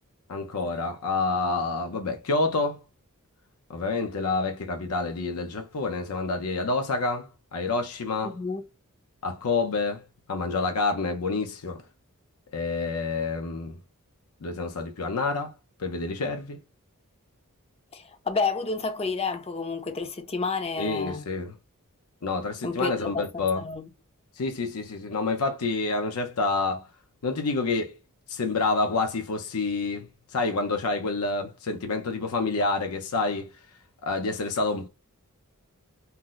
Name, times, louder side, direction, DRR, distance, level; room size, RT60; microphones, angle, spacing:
voice 1, 0.3-2.8 3.7-8.4 9.2-10.0 10.3-11.8 12.5-13.8 14.4-15.5 15.8-16.6 20.8-21.5 22.2-23.6 24.4-26.8 27.2-28.0 28.3-30.1 30.3-33.5 34.0-34.9, left 3 dB, 75° left, 0.6 m, -28 dB
voice 2, 8.2-8.6 17.9-21.2 22.6-23.9, left 4 dB, 25° left, 0.5 m, -30 dB
2.8 x 2.0 x 3.7 m
head